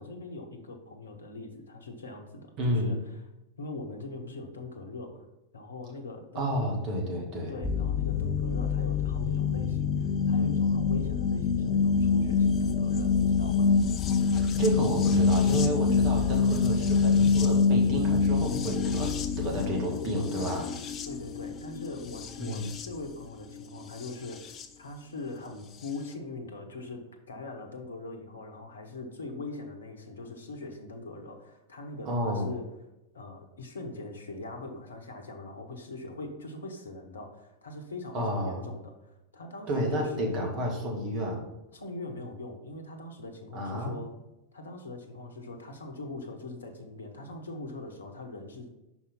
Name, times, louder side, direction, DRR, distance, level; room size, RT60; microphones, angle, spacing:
voice 1, 0.0-3.0 3.6-5.3 5.5-6.7 7.5-13.7 21.1-32.7 33.1-40.3 41.7-44.1 44.5-48.7, left 2 dB, 75° left, 6 dB, 0.9 m, -41 dB
voice 2, 2.6-2.9 6.4-7.5 14.3-20.7 22.4-22.7 32.1-32.5 38.1-38.6 39.7-41.4 43.5-43.9, equal, 40° right, 0 dB, 2.0 m, -30 dB
sound 1, 7.6-24.7 25.8-25.9, left 5 dB, 30° left, 0.6 m, -26 dB
5.6 x 4.5 x 5.6 m, 0.93 s
figure-of-eight pair, 90°, 0 cm